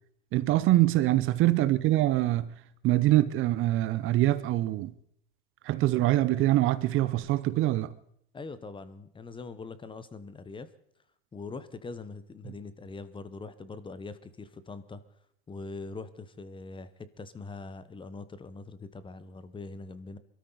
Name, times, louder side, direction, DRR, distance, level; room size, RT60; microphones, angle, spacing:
voice 1, 0.3-2.5 2.8-4.9 5.6-7.9, right 15 dB, 45° right, 0.8 m, -24 dB
voice 2, 8.3-10.7 11.3-15.0 15.5-20.2, left 3 dB, 15° left, 1.0 m, -42 dB
23.0 x 13.0 x 4.0 m
hypercardioid pair, 100°, 29 cm